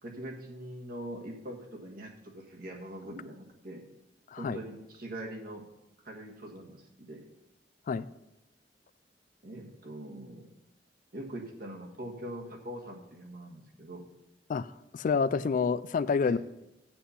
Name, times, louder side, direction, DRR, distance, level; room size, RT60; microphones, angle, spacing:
voice 1, 0.0-3.8 4.4-5.7 6.0-7.2 9.4-10.5 11.1-14.0 16.2-16.4, right 1 dB, 55° right, 2 dB, 1.6 m, -42 dB
voice 2, 14.5-16.4, left 5 dB, 50° left, 16 dB, 0.3 m, -28 dB
8.3 x 7.7 x 5.6 m, 0.93 s
head